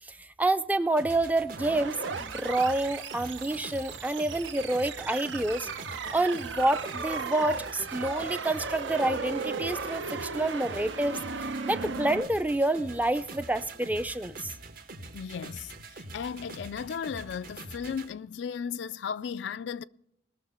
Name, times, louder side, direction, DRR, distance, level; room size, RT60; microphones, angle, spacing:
voice 1, 0.0-5.7 6.1-14.5, right 2 dB, 10° right, 0.5 m, -28 dB
sound 1, 1.0-18.1, right 2 dB, 50° right, 1.1 m, -44 dB
sound 2, 1.6-12.2, right 4 dB, 80° right, 0.8 m, -36 dB
voice 2, 15.1-19.8, left 7 dB, 70° left, 0.4 m, -35 dB
20.0 x 6.6 x 5.6 m
head